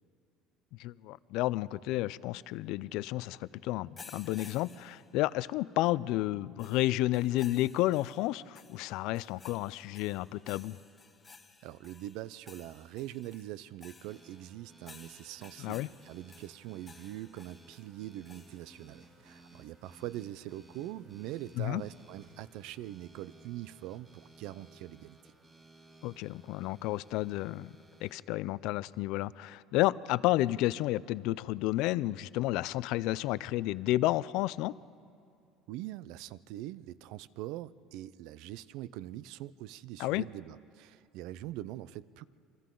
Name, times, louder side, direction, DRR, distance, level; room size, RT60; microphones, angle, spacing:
voice 1, 0.8-10.8 15.6-15.9 21.6-21.8 26.0-27.7 28.0-34.7 40.0-40.2, left 17 dB, 65° left, 18 dB, 0.4 m, -31 dB
sound 1, 4.0-5.6 6.6-18.9, left 4 dB, 15° left, 1.0 m, -56 dB
voice 2, 11.6-25.2 35.7-42.2, right 14 dB, 65° right, 18 dB, 0.5 m, -43 dB
sound 2, 14.1-28.2, right 2 dB, 15° right, 1.1 m, -59 dB
sound 3, 17.9-22.9, right 2 dB, 90° right, 7.5 m, -65 dB
28.5 x 24.5 x 3.8 m, 2.4 s
cardioid pair, 160°, 0 cm